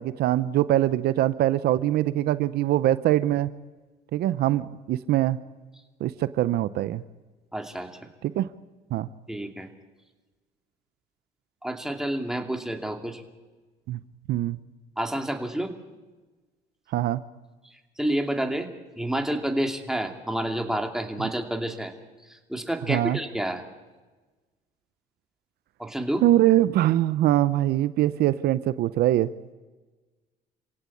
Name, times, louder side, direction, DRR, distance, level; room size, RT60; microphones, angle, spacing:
voice 1, 0.0-3.5 4.1-5.4 6.0-7.0 8.4-8.5 8.9-9.1 13.9-14.0 14.3-14.6 16.9-17.2 22.9-23.2 26.2-29.3, right 14 dB, 70° right, 15 dB, 0.7 m, -23 dB
voice 2, 7.5-8.1 9.3-9.7 11.6-13.2 15.0-15.7 17.6-18.7 19.0-21.9 22.3-23.6 25.8-26.2, right 1 dB, 5° right, 4 dB, 2.6 m, -29 dB
27.5 x 17.0 x 8.6 m, 1.3 s
cardioid pair, 110°, 17 cm